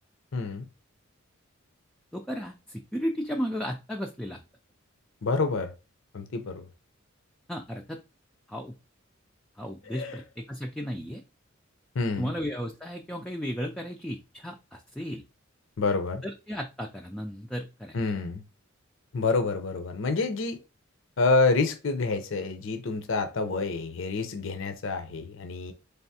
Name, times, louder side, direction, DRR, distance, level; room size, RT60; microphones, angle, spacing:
voice 1, 0.3-0.6 5.2-5.7 6.1-6.7 9.9-10.2 11.9-12.3 15.8-16.2 17.9-18.4 19.1-20.6 21.2-25.7, left 3 dB, 70° left, 0.6 m, -28 dB
voice 2, 2.1-4.4 7.5-8.0 8.5-8.7 9.6-11.2 12.2-15.2 16.2-18.0, equal, 5° left, 0.3 m, -34 dB
4.0 x 3.4 x 2.7 m
head